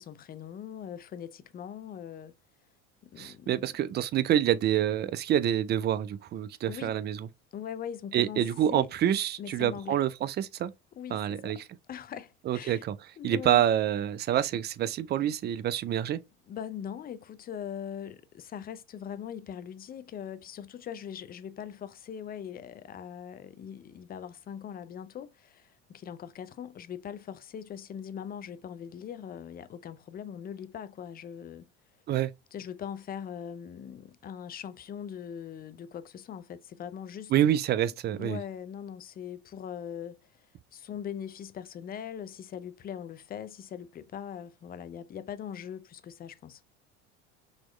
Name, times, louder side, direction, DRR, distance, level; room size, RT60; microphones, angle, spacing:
voice 1, 0.0-2.3 3.1-3.8 6.7-7.0 7.5-8.9 9.4-10.0 11.0-11.5 11.9-12.8 13.2-13.6 16.5-31.7 32.5-37.3 38.1-40.2 40.7-46.6, left 8 dB, 30° left, 0.5 m, -41 dB
voice 2, 3.2-7.3 8.1-10.7 11.1-11.7 12.5-13.0 13.2-16.2 32.1-32.3 37.3-38.4, right 11 dB, 30° right, 0.4 m, -27 dB
3.9 x 3.0 x 3.0 m
supercardioid pair, 95°, 33 cm